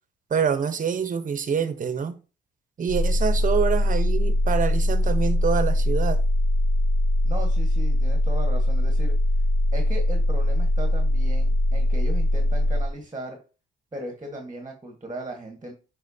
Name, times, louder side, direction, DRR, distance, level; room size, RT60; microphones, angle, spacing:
voice 1, 0.3-2.1 2.8-6.2, right 6 dB, 40° right, 1.0 m, -26 dB
sound 1, 2.9-12.9, left 1 dB, 75° left, 1.3 m, -22 dB
voice 2, 7.2-9.1 9.7-13.4 13.9-15.7, right 1 dB, 20° right, 1.6 m, -37 dB
7.8 x 4.4 x 2.8 m
cardioid pair, 90°, 20 cm